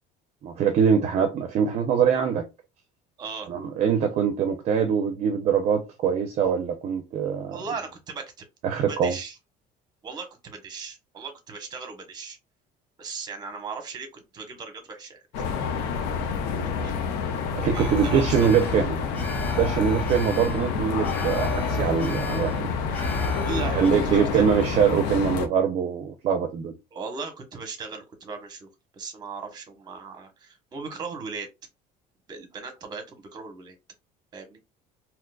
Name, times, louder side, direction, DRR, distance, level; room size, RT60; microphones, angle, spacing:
voice 1, 0.4-2.5 3.5-7.6 8.6-9.1 16.6-16.7 17.5-22.7 23.7-26.7, right 7 dB, 45° right, 0.5 m, -23 dB
voice 2, 3.2-3.5 7.5-8.4 8.9-9.4 10.0-12.4 13.0-15.2 16.7-16.9 17.6-18.4 20.0-20.1 23.4-23.8 24.0-24.5 26.9-28.7 28.9-31.5 32.3-33.8 34.3-34.6, right 4 dB, 25° right, 0.9 m, -37 dB
sound 1, 15.3-25.5, left 6 dB, 85° left, 0.7 m, -28 dB
Alarm, 17.7-23.9, left 1 dB, 10° left, 0.8 m, -33 dB
3.7 x 2.9 x 2.2 m
cardioid pair, 165°, 16 cm